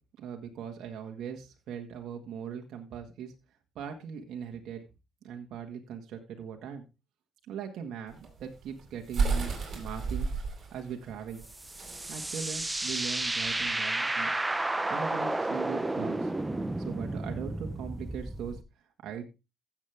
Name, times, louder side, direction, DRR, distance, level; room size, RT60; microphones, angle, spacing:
voice 1, 0.2-3.3 3.7-4.8 5.2-6.8 7.5-10.3 10.7-11.4 12.1-14.3 14.8-16.3 16.8-18.6 19.0-19.2, right 7 dB, 75° right, 2 dB, 1.7 m, -40 dB
sound 1, 8.1-13.7, right 4 dB, 50° right, 5.1 m, -33 dB
sound 2, 11.4-18.6, right 2 dB, 15° right, 1.0 m, -32 dB
15.0 x 7.5 x 3.5 m, 0.26 s
cardioid pair, 90°, 0 cm